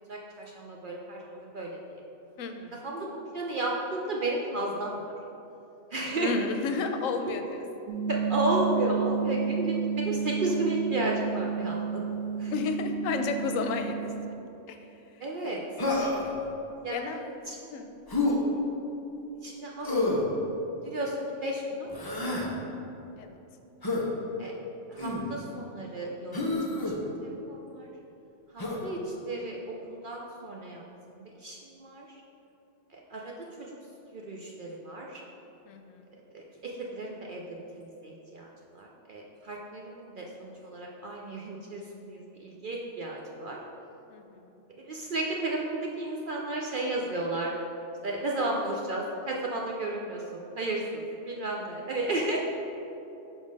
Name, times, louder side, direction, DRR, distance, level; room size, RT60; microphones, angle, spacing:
voice 1, 0.1-2.0 2.8-3.1 3.3-5.0 5.9-6.3 8.1-12.0 12.4-12.5 15.2-15.6 16.8-17.0 17.5-17.6 19.4-20.3 20.8-21.9 22.2-22.3 24.4-24.5 24.9-26.5 27.0-27.9 28.5-30.8 31.1-32.1 32.9-33.3 33.6-33.7 34.1-35.2 36.3-37.4 37.8-43.6 44.8-47.5 48.0-52.4, right 2 dB, 55° right, -1 dB, 0.6 m, -33 dB
voice 2, 2.4-2.8 6.2-7.7 12.5-14.0 14.7-14.8 15.1-15.6 16.9-17.4 17.7-17.9 23.2-23.3 28.7-28.8 35.6-36.2 44.1-44.5, left 4 dB, 80° left, 6 dB, 1.0 m, -32 dB
sound 1, 7.9-14.3, right 7 dB, 80° right, 1.0 m, -31 dB
Human voice, 15.8-16.3 18.1-18.4 19.8-20.3 21.9-22.5 23.8-24.1 25.0-25.3 26.3-26.9 28.6-28.8, left 2 dB, 20° left, 0.7 m, -28 dB
5.3 x 5.1 x 5.2 m, 2.9 s
omnidirectional pair, 1.4 m